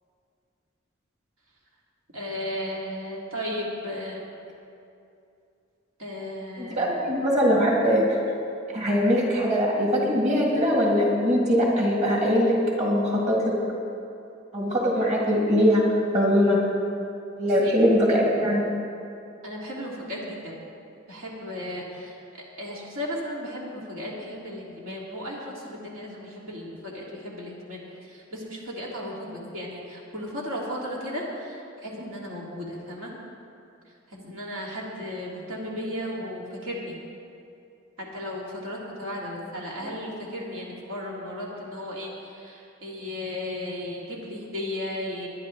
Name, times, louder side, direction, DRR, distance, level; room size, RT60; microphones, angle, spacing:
voice 1, 2.1-4.2 6.0-7.0 17.6-17.7 19.4-20.6 21.1-22.2 22.6-33.1 34.1-37.0 38.0-45.3, left 1 dB, 85° right, -4 dB, 2.2 m, -35 dB
voice 2, 6.6-8.0 8.7-13.4 14.5-15.8 16.1-16.6 17.4-18.6, equal, 35° right, -4 dB, 2.3 m, -21 dB
20.5 x 10.5 x 3.1 m, 2.6 s
head